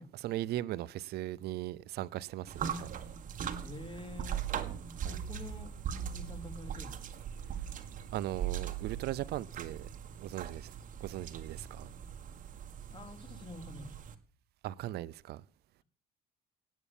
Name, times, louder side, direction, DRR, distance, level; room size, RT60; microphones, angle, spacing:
voice 1, 0.2-3.0 4.6-4.8 8.1-9.9 10.2-10.7 11.0-11.9 14.6-15.4, right 14 dB, 75° right, 0.6 m, -38 dB
sound 1, 2.5-14.2, right 8 dB, 50° right, 1.9 m, -40 dB
voice 2, 3.6-4.7 5.0-7.2 12.9-14.0, left 2 dB, 30° left, 4.1 m, -48 dB
18.5 x 8.3 x 7.1 m
cardioid pair, 110°, 17 cm